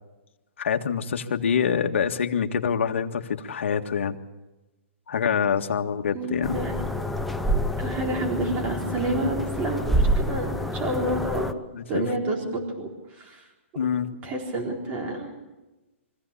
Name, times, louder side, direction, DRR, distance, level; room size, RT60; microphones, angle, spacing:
voice 1, 0.6-4.2 5.1-6.6 11.7-12.1 13.8-14.1, left 7 dB, 70° left, 4 dB, 1.8 m, -26 dB
voice 2, 6.1-6.7 7.8-11.5 11.9-13.4 14.2-15.3, right 2 dB, 20° right, 1 dB, 4.1 m, -29 dB
sound 1, 6.4-11.5, equal, ahead, 0.7 m, -27 dB
24.5 x 15.5 x 8.5 m, 1.1 s
hypercardioid pair, 160°, 7 cm